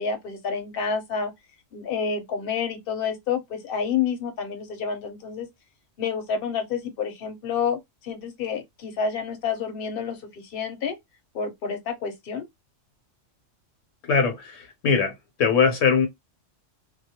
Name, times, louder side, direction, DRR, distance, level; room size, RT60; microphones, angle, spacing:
voice 1, 0.0-1.3 1.7-5.5 6.0-11.0 11.3-12.4, left 6 dB, 55° left, 0.8 m, -29 dB
voice 2, 14.0-15.1 15.4-16.1, left 5 dB, 75° left, 1.0 m, -21 dB
2.3 x 2.0 x 2.7 m
omnidirectional pair, 1.3 m